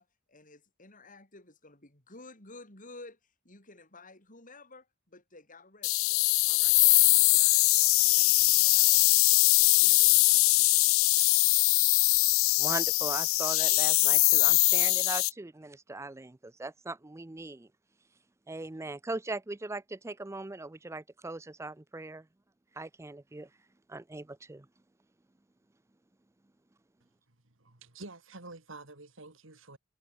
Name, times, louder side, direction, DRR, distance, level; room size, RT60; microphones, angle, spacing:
voice 1, 0.0-3.2 3.4-6.2 6.5-9.3 9.6-10.7, left 2 dB, 40° left, 7.2 m, -53 dB
sound 1, 5.8-15.3, left 23 dB, 80° left, 0.4 m, -22 dB
voice 2, 12.6-17.7 18.5-22.3 22.8-23.5 23.9-24.7, right 2 dB, 15° right, 0.5 m, -39 dB
voice 3, 27.4-29.8, right 2 dB, 70° right, 2.9 m, -48 dB
head